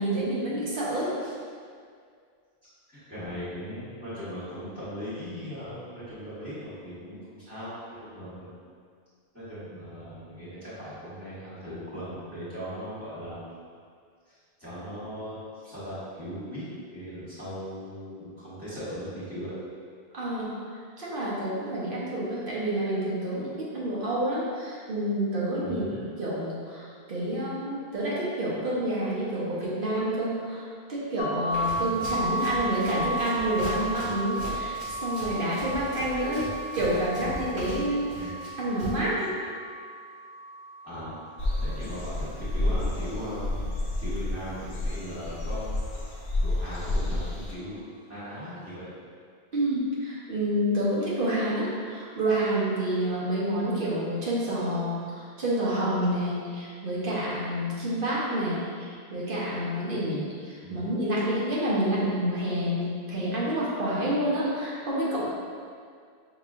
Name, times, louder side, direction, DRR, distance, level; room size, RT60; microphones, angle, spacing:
voice 1, 0.0-1.3 20.1-36.5 36.8-38.3 38.6-39.3 49.5-65.2, right 1 dB, 55° right, -7 dB, 1.1 m, -28 dB
voice 2, 2.9-8.6 9.3-13.4 14.3-16.7 16.9-19.6 25.6-26.0 31.8-32.1 38.1-38.3 40.8-41.2 41.6-43.7 44.0-45.8 46.4-48.9 60.6-60.9, equal, 15° left, -14 dB, 1.4 m, -38 dB
sound 1, 31.2-42.9, right 1 dB, 55° left, 0.7 m, -34 dB
Run, 31.5-39.1, left 1 dB, 80° right, 1.9 m, -41 dB
sound 2, 41.4-47.5, left 1 dB, 85° left, 1.0 m, -30 dB
5.6 x 3.0 x 2.5 m, 2.1 s
omnidirectional pair, 1.1 m